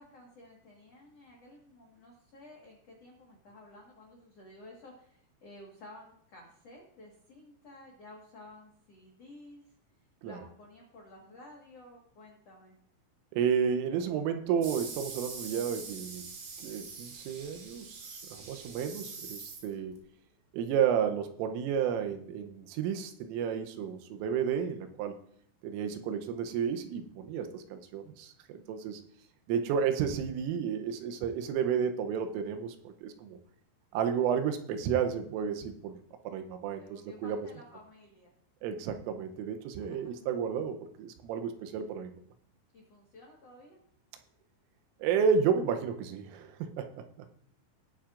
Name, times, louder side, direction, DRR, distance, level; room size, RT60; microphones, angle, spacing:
voice 1, 0.0-9.7 10.2-12.8 36.8-38.3 39.8-40.3 42.7-43.8, left 1 dB, 90° left, -2 dB, 1.4 m, -53 dB
voice 2, 13.3-16.2 16.6-20.0 20.5-25.2 25.6-29.0 29.5-33.4 33.9-36.0 36.2-37.4 38.6-42.1 45.0-47.0, right 7 dB, 90° right, 7 dB, 3.4 m, -32 dB
sound 1, 14.6-20.0, right 4 dB, 70° right, 4.3 m, -44 dB
19.5 x 7.4 x 2.5 m, 0.65 s
omnidirectional pair, 5.6 m